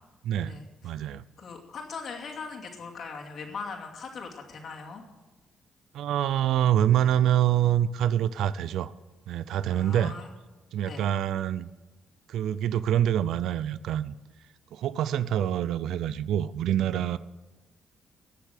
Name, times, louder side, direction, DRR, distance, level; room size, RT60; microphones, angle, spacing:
voice 1, 0.2-0.6 0.8-1.2 5.9-8.9 9.3-10.1 10.7-11.7 12.3-14.1 14.7-17.2, right 11 dB, 80° right, 16 dB, 0.4 m, -26 dB
voice 2, 1.4-5.0 9.7-10.3 10.9-11.1, left 4 dB, 55° left, 0 dB, 2.6 m, -40 dB
19.0 x 6.9 x 6.5 m, 1.2 s
cardioid pair, 90°, 0 cm